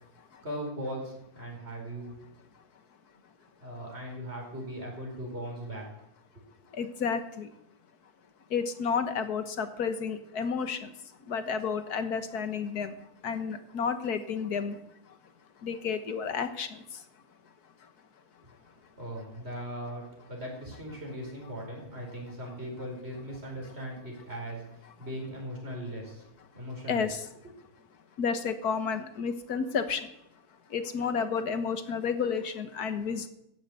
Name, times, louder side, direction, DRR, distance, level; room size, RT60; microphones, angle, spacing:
voice 1, 0.4-2.2 3.6-5.8 19.0-26.2 26.5-27.1, equal, 40° right, -2 dB, 5.2 m, -39 dB
voice 2, 6.7-7.5 8.5-10.9 11.2-14.8 15.1-15.2 15.6-17.1 17.8-17.9 26.9-27.3 28.2-30.1 30.7-33.3, left 6 dB, 80° left, 10 dB, 1.8 m, -31 dB
14.5 x 10.5 x 8.3 m, 0.80 s
omnidirectional pair, 1.6 m